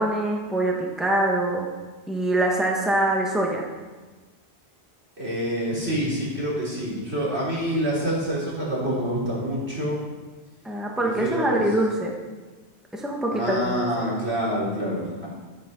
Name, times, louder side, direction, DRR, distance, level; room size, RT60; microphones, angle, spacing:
voice 1, 0.0-1.7 2.1-3.7 10.6-12.1 12.9-14.1, right 1 dB, ahead, -1 dB, 1.5 m, -24 dB
voice 2, 5.2-10.0 11.0-11.6 13.3-15.3, equal, 75° right, -6 dB, 4.9 m, -27 dB
11.5 x 10.0 x 5.4 m, 1.3 s
omnidirectional pair, 1.1 m